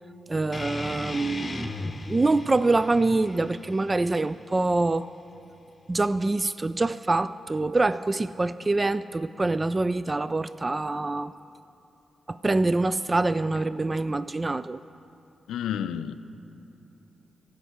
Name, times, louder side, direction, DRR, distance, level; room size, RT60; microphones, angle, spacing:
voice 1, 0.3-1.7 2.0-5.1 5.9-11.3 12.3-14.8, right 2 dB, 35° right, 0.3 m, -25 dB
sound 1, 0.5-5.6, left 2 dB, 35° left, 0.9 m, -38 dB
voice 2, 15.5-16.2, left 9 dB, 85° left, 0.4 m, -30 dB
16.0 x 5.4 x 7.9 m
supercardioid pair, 40°, 0 cm